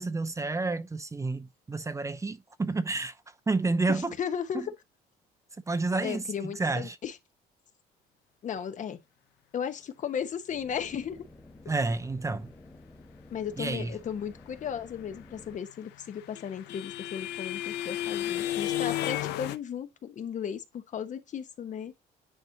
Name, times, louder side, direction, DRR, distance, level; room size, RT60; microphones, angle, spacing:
voice 1, 0.0-3.1 3.5-4.1 4.5-4.7 5.7-6.2 6.6-7.0 11.7-12.5 13.6-13.9, right 3 dB, 20° right, 0.7 m, -30 dB
voice 2, 3.9-4.7 6.0-7.2 8.4-9.0 9.5-11.2 13.3-21.9, left 8 dB, 45° left, 1.2 m, -35 dB
sound 1, 10.5-15.6, left 2 dB, 15° left, 1.7 m, -52 dB
sound 2, 15.7-19.6, left 13 dB, 85° left, 0.8 m, -32 dB
9.9 x 4.4 x 2.8 m
cardioid pair, 110°, 17 cm